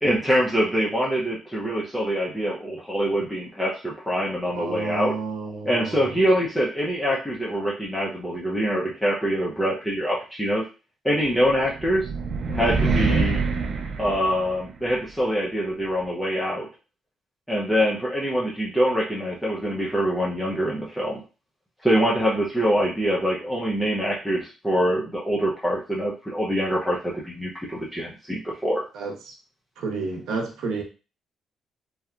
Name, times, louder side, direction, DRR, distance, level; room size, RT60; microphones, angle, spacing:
voice 1, 0.0-5.1 5.7-10.6 11.0-12.1 12.5-13.4 14.0-16.7 17.5-21.2 21.8-28.8, equal, 5° left, -5 dB, 0.6 m, -24 dB
voice 2, 4.5-6.2 28.9-29.3 29.8-30.8, right 4 dB, 85° right, 1 dB, 0.7 m, -31 dB
sound 1, 11.4-14.9, right 4 dB, 60° right, 0.4 m, -25 dB
2.7 x 2.1 x 2.4 m, 0.32 s
cardioid pair, 90°, 0 cm